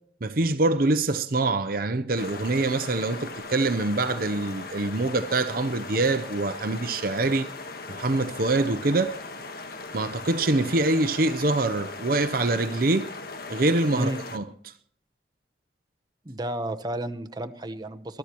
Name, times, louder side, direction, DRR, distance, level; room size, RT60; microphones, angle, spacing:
voice 1, 0.2-7.5 7.9-9.2 9.9-13.1 13.5-14.7, right 2 dB, 55° right, 0.7 m, -25 dB
sound 1, 2.1-14.4, left 3 dB, 55° left, 1.4 m, -39 dB
voice 2, 16.2-18.2, right 1 dB, 25° right, 0.9 m, -32 dB
22.0 x 13.0 x 3.0 m
head